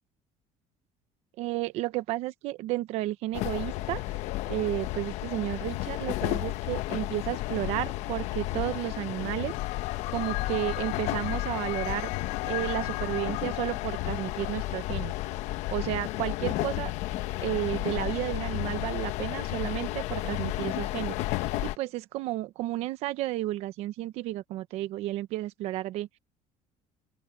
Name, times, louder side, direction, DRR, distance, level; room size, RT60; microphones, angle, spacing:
voice 1, 1.4-4.0 4.5-9.5 10.1-12.1 12.4-15.1 15.7-16.9 17.4-21.1 21.6-26.2, right 16 dB, 55° right, 1.0 m, -32 dB
sound 1, 3.3-21.8, left 17 dB, 65° left, 1.0 m, -32 dB
sound 2, 9.5-14.5, left 22 dB, 80° left, 4.8 m, -37 dB
open air
cardioid pair, 170°, 13 cm